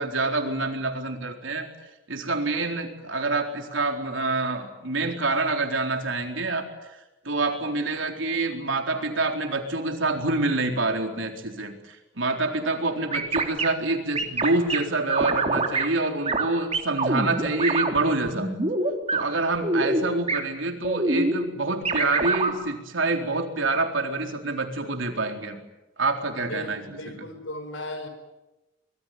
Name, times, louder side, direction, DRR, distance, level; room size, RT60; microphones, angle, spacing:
voice 1, 0.0-1.7 2.1-7.0 7.2-18.5 19.1-25.6 26.0-27.3, right 2 dB, 70° right, 4 dB, 4.1 m, -27 dB
sound 1, 13.1-13.7 14.1-14.8 15.1-15.8 16.3-16.5 16.7-18.0 18.3-19.2 19.5-20.0 20.3-20.4 20.8-21.3 21.8-22.5, right 3 dB, 35° right, 3.1 m, -25 dB
voice 2, 26.4-28.1, left 1 dB, 70° left, 9 dB, 5.4 m, -36 dB
25.5 x 22.5 x 9.4 m, 1.0 s
head